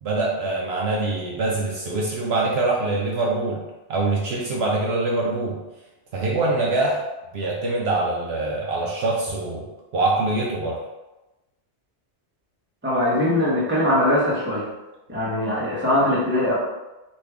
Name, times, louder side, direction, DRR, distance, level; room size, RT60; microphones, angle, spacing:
voice 1, 0.0-3.6 3.9-5.6 6.1-7.0 7.3-9.7 9.9-10.8, right 2 dB, 65° right, -3 dB, 0.8 m, -24 dB
voice 2, 12.8-14.7 15.1-16.5, left 1 dB, 10° right, -7 dB, 0.9 m, -21 dB
3.0 x 2.6 x 3.4 m, 1.0 s
omnidirectional pair, 1.2 m